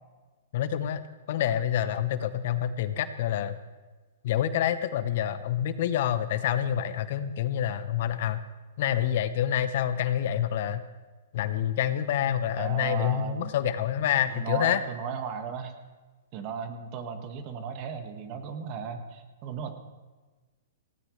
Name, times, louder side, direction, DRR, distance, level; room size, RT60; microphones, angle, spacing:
voice 1, 0.5-1.0 1.3-3.6 4.2-8.4 8.8-10.8 11.3-14.8, left 10 dB, 55° left, 13 dB, 0.9 m, -27 dB
voice 2, 12.6-13.5 14.3-15.7 16.3-19.7, right 7 dB, 40° right, 6 dB, 1.8 m, -35 dB
18.5 x 16.5 x 3.3 m, 1.3 s
hypercardioid pair, 140°, 0 cm